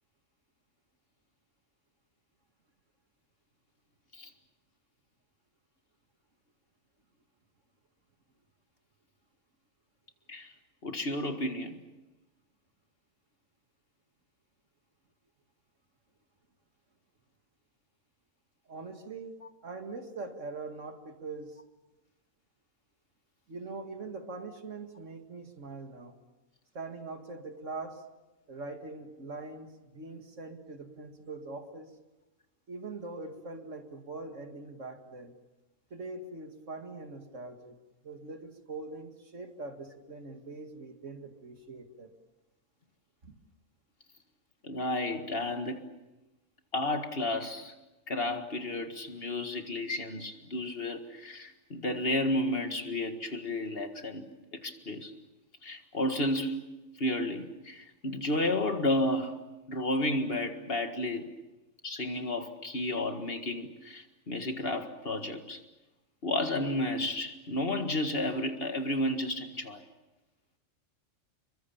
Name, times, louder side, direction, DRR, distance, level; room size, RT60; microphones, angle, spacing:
voice 1, 10.8-11.8 44.6-45.8 46.7-47.7 48.1-55.1 55.6-56.7 57.0-59.4 59.7-61.2 61.8-65.6 66.2-69.8, left 1 dB, 50° left, 2.0 m, -32 dB
voice 2, 18.7-19.3 19.6-21.6 23.5-26.2 26.7-28.0 28.5-31.9 32.7-35.3 35.9-37.8 38.0-42.1 43.2-43.4, right 3 dB, 70° right, 2.5 m, -42 dB
27.5 x 23.0 x 7.3 m
omnidirectional pair, 1.3 m